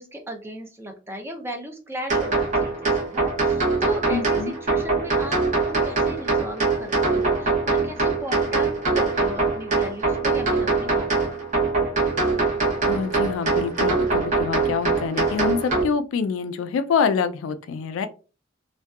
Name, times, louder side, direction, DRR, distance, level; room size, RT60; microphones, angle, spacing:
voice 1, 0.0-11.3, equal, 10° right, 0.4 m, -36 dB
sound 1, 2.1-15.8, right 3 dB, 40° right, 0.9 m, -23 dB
voice 2, 4.1-4.5 12.9-18.1, left 6 dB, 80° left, 0.3 m, -26 dB
2.6 x 2.2 x 2.3 m
head